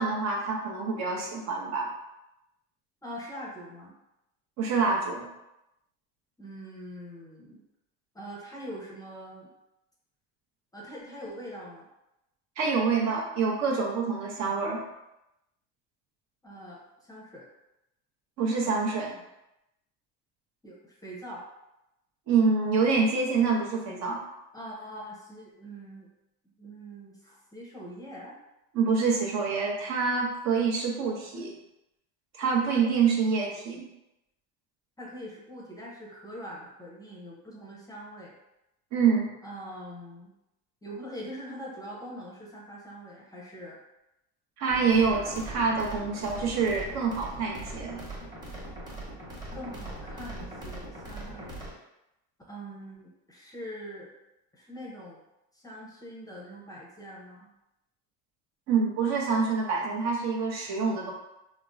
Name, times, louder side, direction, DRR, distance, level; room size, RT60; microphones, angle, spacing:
voice 1, 0.0-1.9 4.6-5.3 12.6-14.8 18.4-19.2 22.3-24.2 28.7-31.5 32.4-33.9 38.9-39.3 44.6-48.0 58.7-61.1, right 5 dB, 55° right, -1 dB, 0.7 m, -26 dB
voice 2, 3.0-4.0 6.4-7.6 8.1-9.5 10.7-11.9 16.4-17.5 20.6-21.5 24.1-26.1 26.4-28.3 35.0-38.3 39.4-40.3 40.8-43.8 49.5-51.6 52.5-54.1 54.5-55.2 55.5-57.5, equal, 10° left, -4 dB, 0.6 m, -43 dB
sound 1, 44.7-51.7, right 1 dB, 10° right, 0.9 m, -40 dB
3.5 x 2.0 x 2.5 m, 0.90 s
cardioid pair, 120°, 34 cm